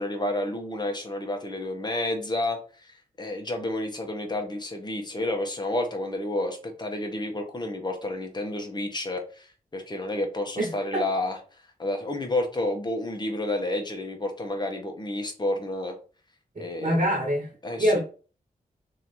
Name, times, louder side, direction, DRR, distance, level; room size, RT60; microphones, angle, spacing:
voice 1, 0.0-11.4 11.8-15.9 16.6-17.0 17.6-18.0, left 1 dB, 30° left, 1.2 m, -30 dB
voice 2, 10.6-11.1 16.5-17.5 17.8-18.0, equal, 50° right, 1.3 m, -25 dB
3.1 x 2.9 x 4.1 m
cardioid pair, 55°, 15 cm